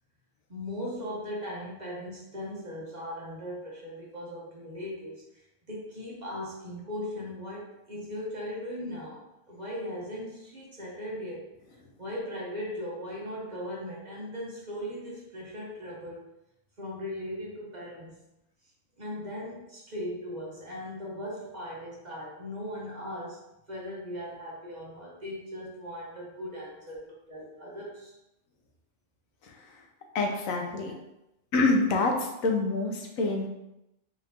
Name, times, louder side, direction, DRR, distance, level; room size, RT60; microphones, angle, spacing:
voice 1, 0.5-5.2 5.7-9.2 9.5-11.5 12.0-16.2 16.8-18.1 19.0-23.4 23.7-28.1 30.5-30.6, equal, 40° right, -5 dB, 0.9 m, -38 dB
voice 2, 30.1-30.9 31.5-32.1 32.4-32.9 33.2-33.5, left 3 dB, 85° left, 1 dB, 1.1 m, -25 dB
3.8 x 3.5 x 2.7 m, 0.88 s
omnidirectional pair, 1.4 m